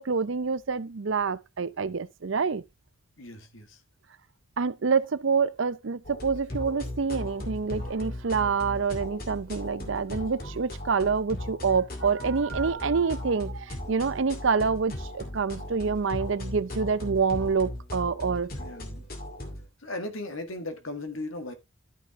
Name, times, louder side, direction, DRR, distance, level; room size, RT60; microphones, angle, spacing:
voice 1, 0.0-2.6 4.6-18.5, right 5 dB, 70° right, 0.6 m, -27 dB
voice 2, 3.2-3.8 18.6-19.0 19.8-21.5, left 2 dB, 85° left, 1.8 m, -37 dB
sound 1, 6.0-19.7, left 1 dB, 45° left, 2.3 m, -37 dB
12.5 x 5.8 x 3.5 m
head